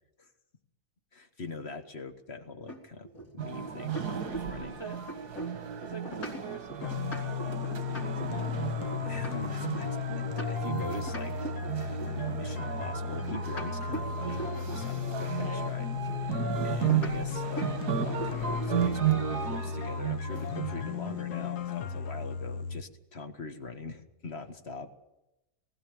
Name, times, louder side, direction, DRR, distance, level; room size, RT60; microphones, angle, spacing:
voice 1, 1.1-4.8 9.0-14.4 14.7-15.9 16.6-24.9, left 3 dB, 45° left, 7 dB, 1.8 m, -42 dB
sound 1, 2.7-4.6 4.9-10.7 11.1-12.2 13.1-14.9 16.9-17.2 17.6-17.7 18.0-18.7, right 1 dB, 65° left, 3.9 m, -41 dB
sound 2, 3.4-21.2, right 8 dB, 90° right, 1.9 m, -34 dB
voice 2, 4.6-5.0 5.8-8.7 15.1-15.7, right 4 dB, 25° right, 7 dB, 0.6 m, -45 dB
sound 3, 6.8-22.8, left 8 dB, 85° left, 1.6 m, -35 dB
19.5 x 16.0 x 8.9 m, 0.94 s
omnidirectional pair, 1.6 m